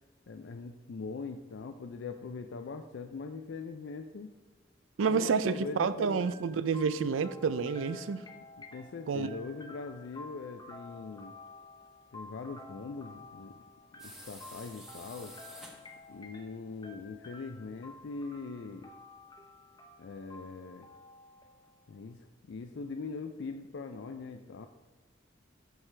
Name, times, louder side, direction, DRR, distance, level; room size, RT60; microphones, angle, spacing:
voice 1, 0.3-4.3 5.1-6.4 8.6-11.3 12.1-13.6 13.9-15.3 16.1-18.9 20.0-20.9 21.9-24.7, left 4 dB, 65° left, 6 dB, 0.4 m, -42 dB
voice 2, 5.0-8.3 9.1-9.3, right 5 dB, 90° right, 14 dB, 0.4 m, -29 dB
sound 1, 6.2-22.0, left 2 dB, 20° left, 0.8 m, -52 dB
sound 2, 14.0-16.2, equal, 5° right, 1.0 m, -50 dB
13.0 x 4.7 x 3.3 m, 1.2 s
head